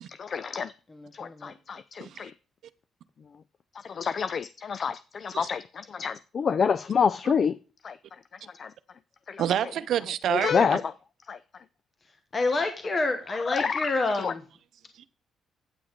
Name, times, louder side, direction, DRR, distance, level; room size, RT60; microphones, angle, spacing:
voice 1, 0.1-0.7 1.1-2.3 3.8-7.6 7.8-8.0 8.5-8.7 9.3-9.4 10.3-10.8 11.3-11.4 13.5-13.9 14.2-14.3, left 6 dB, 45° left, 0.3 m, -28 dB
voice 2, 0.9-1.5 12.3-14.4, left 3 dB, 30° left, 1.2 m, -28 dB
voice 3, 2.0-2.3 5.3-5.5 9.4-10.8 14.9-15.1, right 10 dB, 70° right, 0.6 m, -28 dB
9.2 x 6.3 x 4.6 m
cardioid pair, 110°, 0 cm